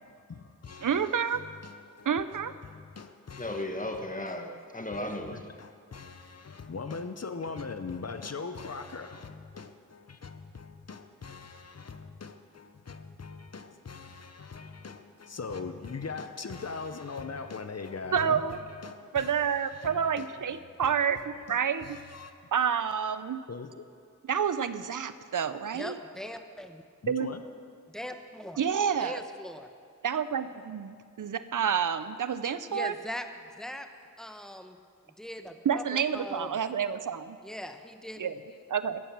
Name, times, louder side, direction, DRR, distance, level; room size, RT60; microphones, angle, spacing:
voice 1, 0.0-2.1 2.6-3.6 4.9-19.3 19.7-20.3 20.8-21.0 21.5-22.3 23.5-23.9 27.0-27.4 38.5-38.6, left 4 dB, 50° left, 9 dB, 0.8 m, -41 dB
voice 2, 0.8-1.4 2.1-2.5 18.1-18.6 19.1-21.9 22.5-23.4 24.3-26.0 27.1-27.3 28.6-29.2 30.0-33.0 35.6-37.4 38.2-38.3 38.7-39.0, right 7 dB, 75° right, 13 dB, 0.6 m, -29 dB
voice 3, 3.4-5.4, left 1 dB, 25° left, 4 dB, 1.5 m, -35 dB
voice 4, 25.7-26.8 27.9-28.6 29.0-29.7 32.7-33.3 33.6-33.9 34.2-34.8 35.2-36.5 37.4-38.3, left 1 dB, ahead, 7 dB, 1.0 m, -40 dB
15.0 x 10.5 x 6.0 m, 2.3 s
wide cardioid pair, 60°, 32 cm